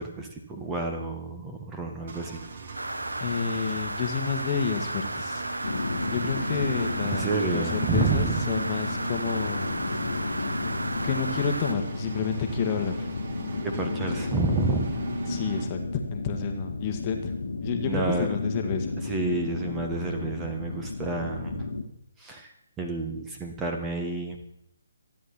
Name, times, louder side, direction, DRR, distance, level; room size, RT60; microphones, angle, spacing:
voice 1, 0.0-2.4 7.0-8.5 13.6-14.9 17.9-18.4 19.0-21.7 22.2-24.4, right 3 dB, 10° right, 3 dB, 1.7 m, -30 dB
Engine, 2.1-15.6, right 5 dB, 40° right, 2.1 m, -39 dB
sound 1, 2.7-11.7, right 1 dB, 75° right, 1.2 m, -34 dB
voice 2, 3.2-5.4 6.1-9.7 11.0-13.1 15.3-17.3 17.6-19.0, left 6 dB, 25° left, 4 dB, 1.7 m, -30 dB
sound 2, 5.6-21.8, left 3 dB, 60° left, 1.7 m, -33 dB
27.0 x 10.5 x 4.3 m, 0.75 s
figure-of-eight pair, 140°, 0 cm